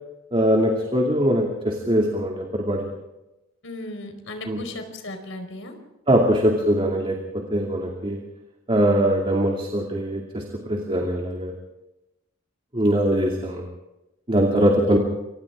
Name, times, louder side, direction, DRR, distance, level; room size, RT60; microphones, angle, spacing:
voice 1, 0.3-2.9 4.5-4.6 6.1-7.2 7.5-8.2 8.7-11.5 12.7-13.6 14.3-15.0, equal, 30° right, 0 dB, 2.5 m, -21 dB
voice 2, 3.6-5.8 14.5-15.0, left 1 dB, 70° left, 5 dB, 4.7 m, -36 dB
28.0 x 25.0 x 3.7 m, 0.95 s
head